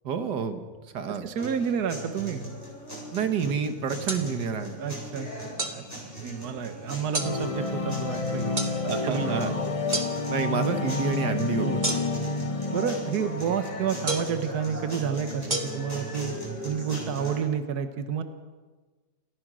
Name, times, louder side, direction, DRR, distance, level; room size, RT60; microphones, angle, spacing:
voice 1, 0.1-0.6 0.9-1.3 3.1-4.8 8.8-9.5 10.3-11.7, right 6 dB, 85° right, 8 dB, 1.9 m, -28 dB
voice 2, 1.1-2.4 4.8-5.8 6.2-8.5 9.0-9.5 11.6-12.4 12.7-16.3 16.6-18.2, right 7 dB, 70° right, 9 dB, 1.7 m, -30 dB
sound 1, 1.4-17.4, right 1 dB, 10° left, 7.7 m, -39 dB
sound 2, 4.1-4.2 5.6-5.8 7.1-7.3 8.6-8.7 9.9-10.1 11.8-12.3 14.1-14.4 15.5-15.6, right 2 dB, 30° right, 1.9 m, -28 dB
sound 3, 7.2-14.1, left 3 dB, 25° left, 0.8 m, -30 dB
28.5 x 15.5 x 6.2 m, 1.4 s
omnidirectional pair, 1.8 m